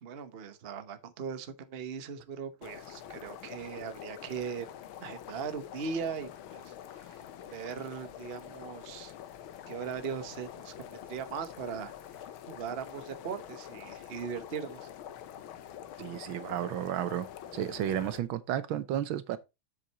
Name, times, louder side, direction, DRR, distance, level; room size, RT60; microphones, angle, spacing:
voice 1, 0.0-4.7 5.0-9.1 9.7-14.9, right 6 dB, 40° right, 0.9 m, -39 dB
sound 1, 2.6-18.2, left 10 dB, 90° left, 1.7 m, -46 dB
voice 2, 16.0-17.3 17.5-19.4, right 11 dB, 80° right, 1.6 m, -32 dB
7.5 x 6.5 x 4.1 m
omnidirectional pair, 2.2 m